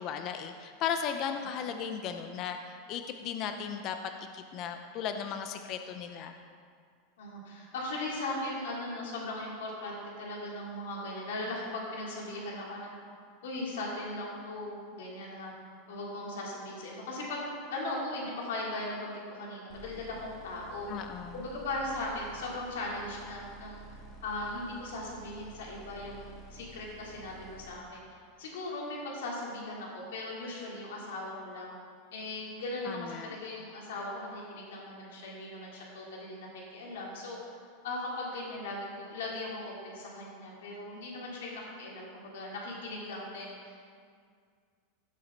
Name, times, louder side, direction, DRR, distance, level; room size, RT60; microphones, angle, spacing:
voice 1, 0.0-6.4 20.9-21.3 32.8-33.3, left 7 dB, 40° left, 6 dB, 0.6 m, -36 dB
voice 2, 7.2-12.9 13.4-15.5 15.9-17.4 17.7-20.9 21.3-23.8 24.2-31.7 32.1-37.4 37.8-43.8, left 2 dB, 90° left, -4 dB, 3.3 m, -38 dB
sound 1, 19.7-27.7, right 1 dB, 15° left, 3.2 m, -52 dB
16.5 x 7.6 x 4.0 m, 2.1 s
supercardioid pair, 155°, 0 cm